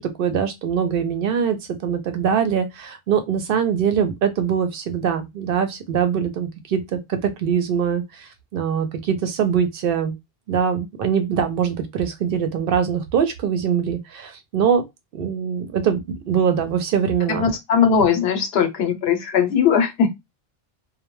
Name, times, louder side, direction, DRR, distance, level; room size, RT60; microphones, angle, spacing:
voice 1, 0.0-1.6 1.8-10.1 10.5-14.8 15.1-16.0 16.3-17.5, right 7 dB, 65° right, 0.7 m, -22 dB
voice 2, 17.3-20.1, left 7 dB, 85° left, 0.9 m, -19 dB
2.2 x 2.0 x 3.0 m
omnidirectional pair, 1.0 m